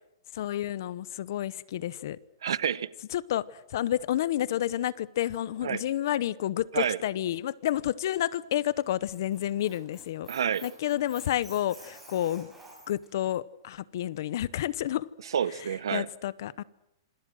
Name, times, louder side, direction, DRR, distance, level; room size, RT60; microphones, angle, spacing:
voice 1, 0.3-2.2 3.1-10.3 10.6-12.5 12.9-15.1 15.9-16.6, left 12 dB, 50° left, 0.9 m, -30 dB
voice 2, 2.4-2.9 5.6-5.8 6.7-7.0 10.3-10.7 15.3-16.1, right 8 dB, 85° right, 1.0 m, -28 dB
Squeak, 8.8-13.1, right 2 dB, 5° right, 7.0 m, -51 dB
27.0 x 25.5 x 6.4 m
hypercardioid pair, 170°, 2 cm